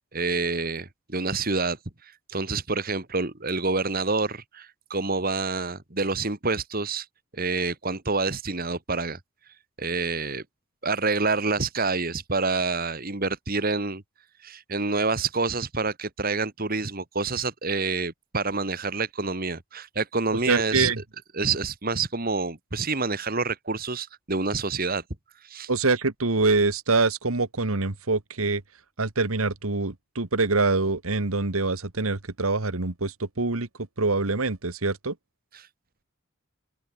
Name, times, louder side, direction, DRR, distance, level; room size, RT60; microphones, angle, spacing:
voice 1, 0.1-1.8 2.3-7.1 7.3-9.2 9.8-10.4 10.8-14.0 14.4-20.9 21.3-25.0 25.5-25.7 35.5-35.7, right 3 dB, 45° right, 2.2 m, -27 dB
voice 2, 20.5-21.0 25.7-28.6 29.0-33.7 34.0-35.1, right 3 dB, 80° right, 1.7 m, -25 dB
open air
head